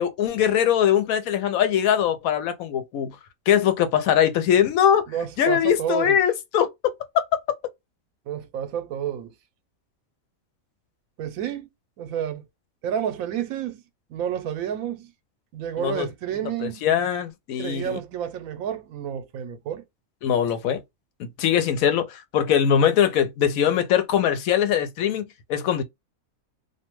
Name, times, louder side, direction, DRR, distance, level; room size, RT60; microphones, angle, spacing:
voice 1, 0.0-3.2 3.5-5.1 5.4-6.7 15.8-16.1 16.6-18.0 20.2-20.8 21.2-25.2 25.5-25.8, left 9 dB, 85° left, 1.0 m, -21 dB
voice 2, 5.1-6.2 8.3-9.3 11.2-11.7 12.0-12.5 12.8-13.8 14.1-15.1 15.5-16.8 17.6-19.8, right 9 dB, 85° right, 1.0 m, -30 dB
2.5 x 2.2 x 2.9 m
omnidirectional pair, 1.4 m